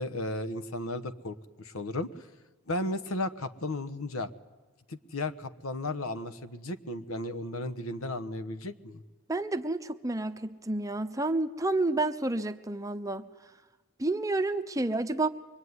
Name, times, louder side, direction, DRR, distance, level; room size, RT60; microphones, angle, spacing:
voice 1, 0.0-2.3 2.7-4.3 4.9-9.0, left 2 dB, 70° left, 12 dB, 1.2 m, -34 dB
voice 2, 9.3-13.2 14.0-15.3, right 2 dB, 15° right, 8 dB, 0.8 m, -30 dB
24.0 x 23.0 x 9.6 m, 1.2 s
head